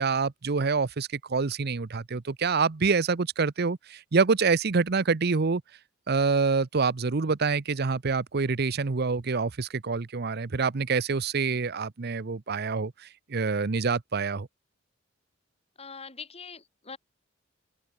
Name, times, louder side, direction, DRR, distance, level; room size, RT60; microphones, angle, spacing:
voice 1, 0.0-5.6 6.1-14.5, right 4 dB, 55° right, 0.7 m, -26 dB
voice 2, 15.8-17.0, left 5 dB, 30° left, 6.2 m, -43 dB
head